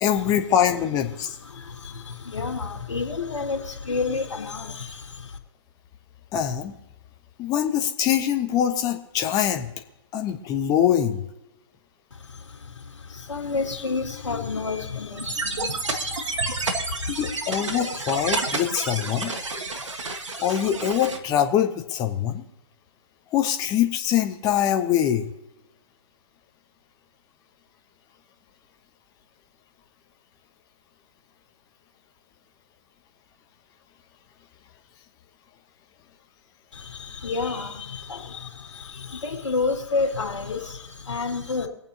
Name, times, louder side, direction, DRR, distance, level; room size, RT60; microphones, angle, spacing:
voice 1, 0.0-1.3 6.3-6.7 7.4-9.7 10.1-11.2 17.1-19.3 20.4-22.4 23.3-25.3, left 10 dB, 25° left, 5 dB, 1.1 m, -23 dB
voice 2, 1.4-5.4 12.1-17.2 36.7-41.7, left 4 dB, 75° left, 0 dB, 2.6 m, -30 dB
sound 1, 15.2-21.2, right 3 dB, 80° right, 1.7 m, -30 dB
24.5 x 8.8 x 2.9 m, 0.94 s
hypercardioid pair, 130°, 15 cm